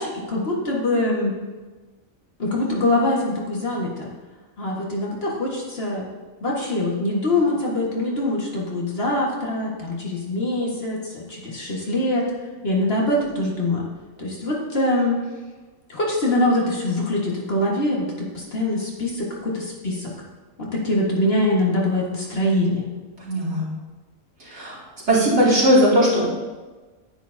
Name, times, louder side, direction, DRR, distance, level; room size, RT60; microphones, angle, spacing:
voice 1, 0.0-1.3 2.4-4.1 4.6-6.0 6.4-12.3 12.6-13.9 14.2-15.2 15.9-20.1 20.6-22.9, left 1 dB, 50° left, -3 dB, 1.7 m, -23 dB
voice 2, 23.2-23.6 24.4-24.8 25.1-26.2, equal, 55° right, -7 dB, 2.9 m, -18 dB
10.0 x 9.3 x 2.7 m, 1.3 s
omnidirectional pair, 1.4 m